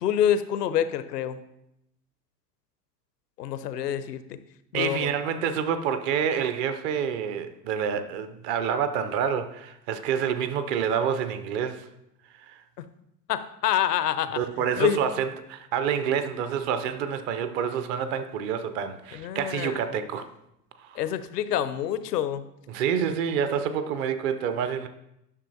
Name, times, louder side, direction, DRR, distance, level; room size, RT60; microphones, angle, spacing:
voice 1, 0.0-1.4 3.4-4.4 4.7-5.1 13.3-14.4 14.8-15.0 19.1-19.8 21.0-22.4, left 10 dB, 70° left, 0.7 m, -26 dB
voice 2, 4.7-11.9 12.3-12.6 14.3-20.3 20.8-21.0 22.7-24.9, right 8 dB, 30° right, 0.4 m, -28 dB
11.0 x 6.1 x 2.7 m
figure-of-eight pair, 90°, 50 cm